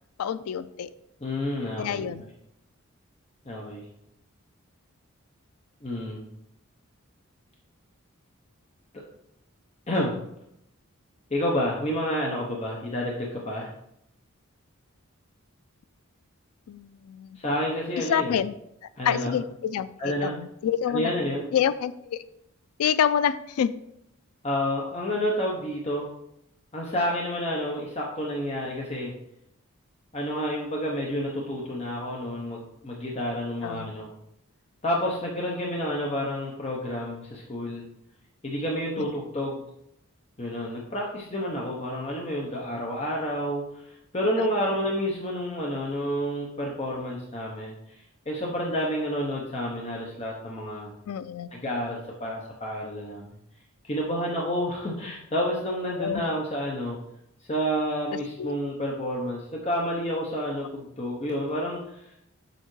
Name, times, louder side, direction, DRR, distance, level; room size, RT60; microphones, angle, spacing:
voice 1, 0.2-0.9 1.8-2.2 16.7-17.4 18.0-18.5 18.8-21.1 21.5-22.2 22.8-23.8 33.6-33.9 39.0-39.1 44.4-44.5 51.1-51.5 55.9-56.3 58.1-58.5, left 8 dB, 85° left, 15 dB, 0.3 m, -28 dB
voice 2, 1.2-2.1 3.5-3.8 5.8-6.3 9.9-10.2 11.3-13.7 17.4-18.4 19.0-19.4 20.0-20.3 20.9-21.5 24.4-26.1 26.7-29.1 30.1-34.1 34.8-37.9 38.4-39.6 40.4-47.7 48.3-50.9 51.5-53.3 53.8-57.0 57.5-62.0, equal, 30° left, -2 dB, 0.8 m, -29 dB
6.6 x 6.5 x 3.2 m, 0.79 s
head